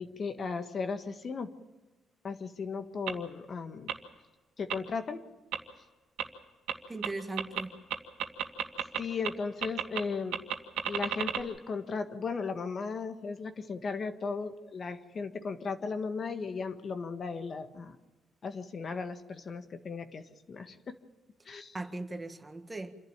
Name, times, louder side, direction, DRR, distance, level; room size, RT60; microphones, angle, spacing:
voice 1, 0.0-1.5 2.2-3.9 4.6-5.2 9.0-10.4 10.9-17.9 18.4-20.8 21.5-21.8, left 4 dB, 45° left, 1.5 m, -36 dB
sound 1, 3.1-3.2 3.9-4.0 4.7-4.8 5.5-5.6 6.2-6.3 6.7-6.8 7.0-7.1 7.4-7.6 7.9-9.0 9.2-9.3 9.6-10.0 10.3-11.4, right 9 dB, 90° right, 1.8 m, -31 dB
voice 2, 6.9-7.8 21.7-22.9, right 2 dB, 20° right, 1.6 m, -38 dB
27.5 x 11.5 x 8.9 m
cardioid pair, 90°, 0 cm